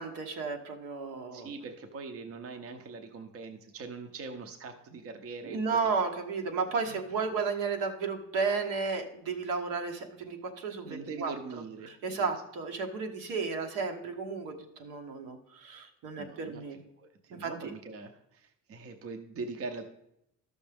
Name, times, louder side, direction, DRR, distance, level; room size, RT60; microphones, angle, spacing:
voice 1, 0.0-1.5 5.4-11.3 11.8-16.8 17.3-17.5, right 4 dB, 80° right, 3 dB, 1.2 m, -33 dB
voice 2, 1.3-5.6 6.9-7.0 10.8-12.3 16.2-19.8, right 4 dB, 45° right, 5 dB, 0.8 m, -42 dB
12.5 x 6.3 x 3.5 m, 0.81 s
cardioid pair, 125°, 31 cm